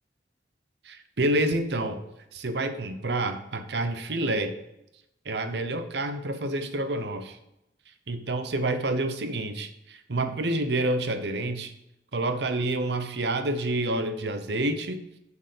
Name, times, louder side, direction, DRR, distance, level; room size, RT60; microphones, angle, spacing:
voice 1, 0.8-2.0 2.3-4.5 5.2-7.4 8.1-11.7 12.1-15.0, right 2 dB, 70° right, 8 dB, 0.8 m, -28 dB
6.9 x 4.6 x 6.6 m, 0.84 s
head